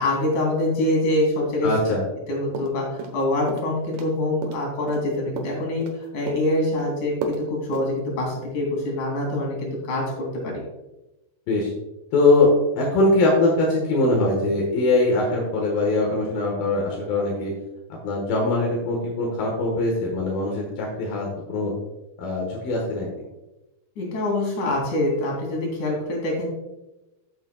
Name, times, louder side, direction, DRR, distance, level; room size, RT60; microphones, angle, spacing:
voice 1, 0.0-1.7 2.3-5.8 6.1-10.0 10.4-10.6 24.0-26.5, left 1 dB, 45° left, -2 dB, 3.4 m, -25 dB
voice 2, 1.6-2.0 11.5-11.7 12.1-12.5 12.8-17.5 18.0-21.7 22.2-23.1, left 2 dB, 70° left, -1 dB, 2.3 m, -22 dB
sound 1, 2.5-3.2 3.5-4.1 4.4-6.0 6.3-6.8 7.2-7.4 7.7-7.9, right 4 dB, 75° right, 2.6 m, -33 dB
14.0 x 7.2 x 2.3 m, 0.99 s
omnidirectional pair, 6.0 m